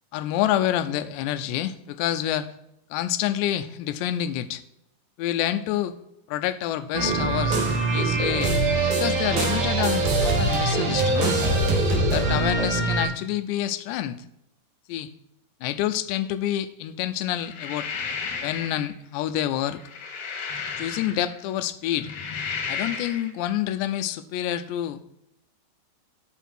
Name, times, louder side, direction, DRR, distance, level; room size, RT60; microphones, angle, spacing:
voice 1, 0.1-2.5 2.9-4.6 5.2-6.0 6.3-7.6 7.9-8.6 8.9-11.4 12.1-14.2 14.9-15.1 15.6-17.9 18.4-19.8 20.8-22.1 22.7-25.0, left 12 dB, 85° left, 11 dB, 2.9 m, -27 dB
sound 1, 6.9-13.0, right 2 dB, 60° right, 3.5 m, -23 dB
sound 2, 17.4-18.9 19.7-21.4 21.9-23.3, left 5 dB, 60° left, 3.1 m, -33 dB
11.5 x 7.2 x 4.4 m, 0.82 s
omnidirectional pair, 4.9 m